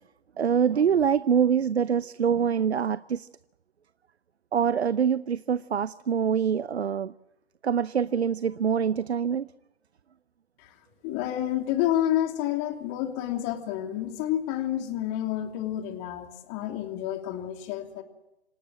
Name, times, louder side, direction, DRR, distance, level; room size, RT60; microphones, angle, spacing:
voice 1, 0.4-3.3 4.5-7.1 7.6-9.5, right 7 dB, 80° right, 0.7 m, -25 dB
voice 2, 11.0-18.0, left 12 dB, 30° left, 3.1 m, -29 dB
27.0 x 18.0 x 7.7 m
figure-of-eight pair, 125°, 32 cm